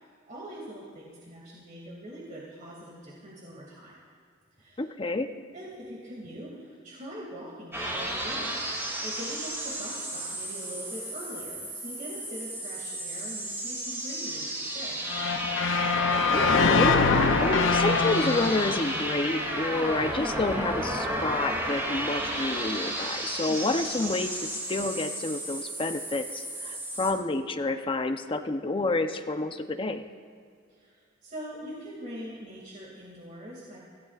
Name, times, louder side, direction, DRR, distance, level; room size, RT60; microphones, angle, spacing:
voice 1, 0.3-4.0 4.6-4.8 5.5-15.1 23.5-23.8 30.7-33.8, equal, 45° right, -4 dB, 2.4 m, -43 dB
voice 2, 4.8-5.3 16.3-30.0, left 2 dB, 25° left, 6 dB, 0.7 m, -29 dB
sound 1, 7.7-27.1, right 1 dB, 15° right, 2.5 m, -33 dB
Truck Horn Passing By Left To Right, 15.1-20.1, left 4 dB, 75° left, 0.6 m, -25 dB
25.5 x 15.5 x 2.5 m, 2.2 s
head